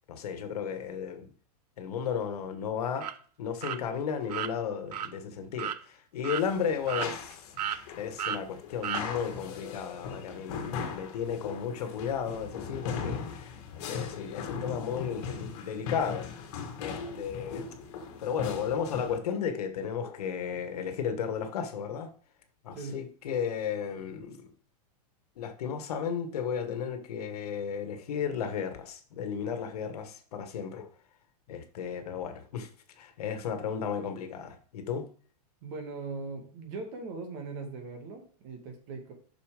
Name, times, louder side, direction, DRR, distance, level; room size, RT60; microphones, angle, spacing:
voice 1, 0.1-1.3 1.8-3.1 3.4-7.5 8.0-16.3 16.8-17.7 18.2-22.1 22.6-24.4 25.4-30.9 31.5-32.7 33.0-35.1, left 7 dB, 70° left, 1.5 m, -34 dB
sound 1, 3.0-3.1 3.6-3.8 4.3-4.5 4.9-5.1 5.6-5.8 6.2-6.4 6.9-7.3 7.6-7.8 8.2-8.4 8.8-9.0, right 10 dB, 75° right, 0.7 m, -33 dB
sound 2, 6.4-19.2, left 6 dB, 50° left, 1.9 m, -39 dB
voice 2, 22.7-23.0 35.6-39.1, right 4 dB, 40° right, 2.2 m, -40 dB
7.0 x 6.2 x 5.0 m
supercardioid pair, 155°, 20 cm